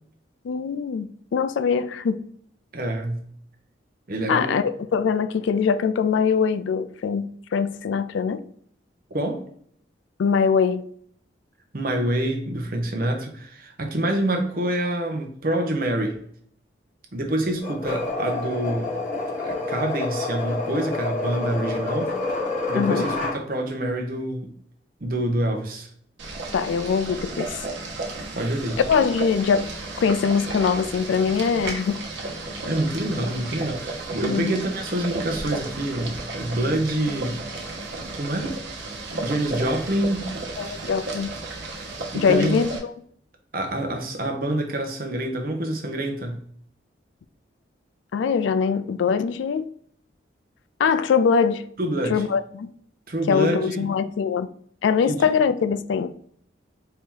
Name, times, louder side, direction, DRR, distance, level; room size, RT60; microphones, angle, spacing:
voice 1, 0.4-2.2 4.3-8.4 10.2-10.9 22.7-23.1 26.5-27.6 28.9-29.7 30.0-32.0 34.2-34.5 40.6-41.3 42.1-42.9 48.1-49.7 50.8-51.7 52.1-52.7 53.3-54.5 54.8-56.1, left 6 dB, 85° left, 0.3 m, -22 dB
voice 2, 2.7-3.3 4.1-4.5 9.1-9.4 11.7-16.2 17.1-18.9 19.4-22.1 22.7-24.5 25.0-25.9 28.3-28.8 32.7-37.5 38.1-38.6 39.2-40.4 42.1-42.6 43.5-46.5 51.8-52.3 53.1-53.9 55.0-55.3, right 1 dB, 50° right, 0.8 m, -26 dB
sound 1, 17.6-23.4, left 2 dB, 45° left, 1.5 m, -28 dB
Boiling, 26.2-42.8, right 2 dB, 80° right, 1.0 m, -33 dB
4.5 x 2.9 x 3.7 m
head